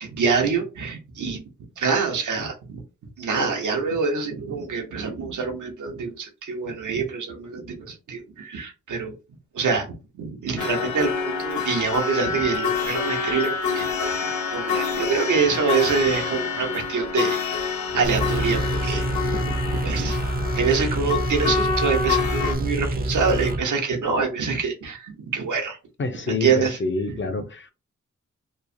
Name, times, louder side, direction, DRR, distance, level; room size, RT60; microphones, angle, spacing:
voice 1, 0.0-1.4 1.8-2.8 3.2-9.1 9.5-13.9 14.5-17.4 17.9-20.2 20.5-25.8 26.3-26.8, right 5 dB, 80° right, 0.8 m, -25 dB
sound 1, 10.6-22.6, left 5 dB, 70° left, 0.9 m, -27 dB
sound 2, 18.0-23.6, right 1 dB, 30° right, 0.5 m, -26 dB
voice 2, 26.0-27.7, left 3 dB, 40° left, 0.5 m, -27 dB
3.0 x 2.0 x 2.5 m
cardioid pair, 55°, 30 cm